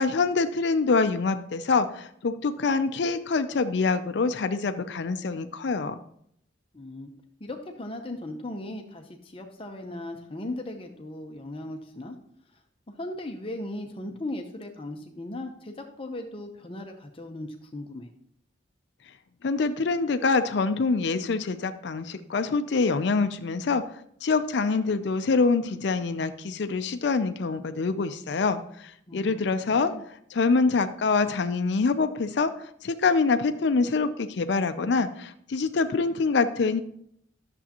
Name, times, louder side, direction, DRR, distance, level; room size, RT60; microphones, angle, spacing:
voice 1, 0.0-6.0 19.4-23.8 24.2-29.9 30.3-36.8, left 4 dB, 60° left, 10 dB, 0.4 m, -25 dB
voice 2, 6.7-7.1 7.4-12.2 12.9-18.1 29.1-30.0, left 1 dB, 30° left, 3 dB, 0.7 m, -37 dB
11.0 x 6.9 x 2.9 m, 0.69 s
head